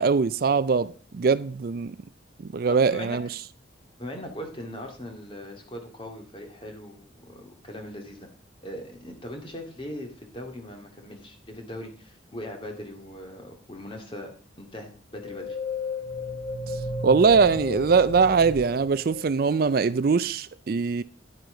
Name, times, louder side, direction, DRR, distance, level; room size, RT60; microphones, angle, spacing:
voice 1, 0.0-1.9 2.5-3.3 17.0-21.0, right 5 dB, 50° right, 0.4 m, -22 dB
voice 2, 2.7-3.2 4.0-8.3 8.6-14.3 14.6-15.6, left 1 dB, 25° left, 2.2 m, -40 dB
sound 1, 15.2-19.8, left 2 dB, 70° left, 1.2 m, -34 dB
11.0 x 9.0 x 3.9 m
head